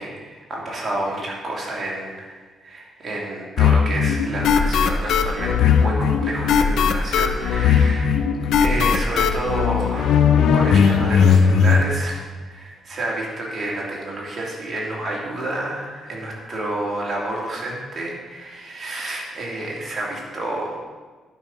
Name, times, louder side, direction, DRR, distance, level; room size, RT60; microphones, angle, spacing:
voice 1, 0.0-8.2 8.6-20.7, right 1 dB, 40° right, -3 dB, 2.8 m, -29 dB
sound 1, 3.6-11.8, left 6 dB, 75° left, 0.6 m, -18 dB
11.5 x 5.8 x 5.5 m, 1.3 s
cardioid pair, 90°, 0 cm